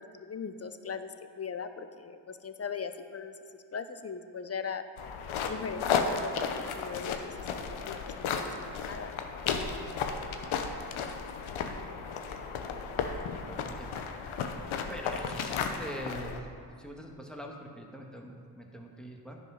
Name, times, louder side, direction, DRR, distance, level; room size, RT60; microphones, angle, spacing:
voice 1, 0.1-3.3 3.7-4.8 5.5-8.5 8.9-9.2, left 6 dB, 30° left, 10 dB, 0.7 m, -39 dB
sound 1, 5.0-16.4, left 6 dB, 75° left, 0.9 m, -34 dB
voice 2, 13.4-13.9 14.9-16.4 16.8-19.4, equal, ahead, 0 dB, 1.7 m, -43 dB
10.5 x 5.1 x 5.7 m, 2.3 s
supercardioid pair, 45°, 48 cm